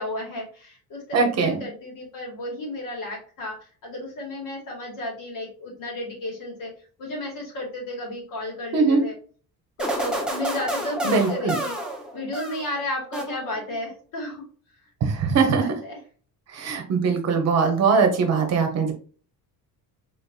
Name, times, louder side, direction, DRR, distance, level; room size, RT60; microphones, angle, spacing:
voice 1, 0.0-3.6 3.8-6.7 7.0-9.1 9.8-11.8 12.1-14.4 15.3-16.0, left 1 dB, 65° left, -1 dB, 2.1 m, -33 dB
voice 2, 1.1-1.6 8.7-9.0 11.0-11.6 15.0-15.7 16.5-18.9, right 5 dB, 45° right, 5 dB, 0.9 m, -21 dB
sound 1, 9.8-12.8 13.1-13.8, right 1 dB, ahead, 0.8 m, -30 dB
4.1 x 3.7 x 2.4 m, 0.41 s
cardioid pair, 160°, 36 cm